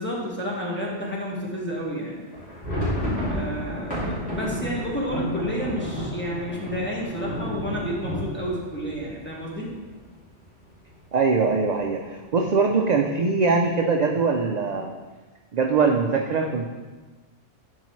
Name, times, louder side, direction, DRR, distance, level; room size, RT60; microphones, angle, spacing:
voice 1, 0.0-2.4 3.3-9.7, equal, 10° left, -5 dB, 1.5 m, -30 dB
sound 1, 2.3-10.0 10.3-10.4 10.7-10.9 11.5-12.0, equal, 60° left, 2.6 m, -31 dB
voice 2, 11.1-14.9 15.5-16.7, right 4 dB, 55° right, 2 dB, 0.5 m, -22 dB
11.0 x 4.7 x 3.2 m, 1.3 s
omnidirectional pair, 1.2 m